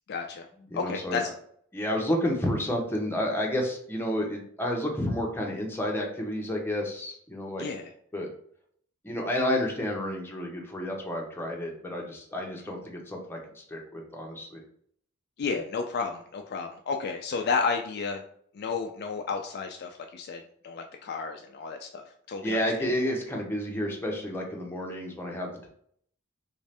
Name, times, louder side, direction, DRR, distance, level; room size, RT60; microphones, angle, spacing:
voice 1, 0.1-0.5 0.7-1.3 7.6-7.9 15.4-18.2 18.5-22.9, left 5 dB, 50° left, 4 dB, 0.3 m, -32 dB
voice 2, 0.7-1.2 1.7-7.6 8.1-8.3 9.0-14.6 22.4-25.7, left 1 dB, 10° left, 0 dB, 0.7 m, -30 dB
3.2 x 2.7 x 3.3 m, 0.62 s
head